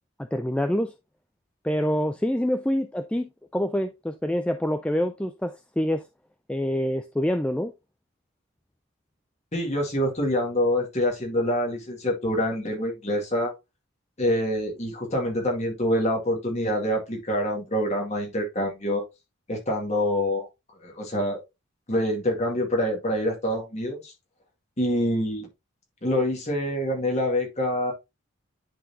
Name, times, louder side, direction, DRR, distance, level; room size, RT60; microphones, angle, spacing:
voice 1, 0.2-0.9 1.6-6.1 6.5-7.7, equal, 5° left, 0.3 m, -26 dB
voice 2, 9.5-13.5 14.2-19.0 19.5-20.5 20.8-21.4 21.9-24.1 24.8-25.5 26.0-27.9, left 1 dB, 30° left, 2.0 m, -26 dB
10.0 x 4.0 x 2.7 m
head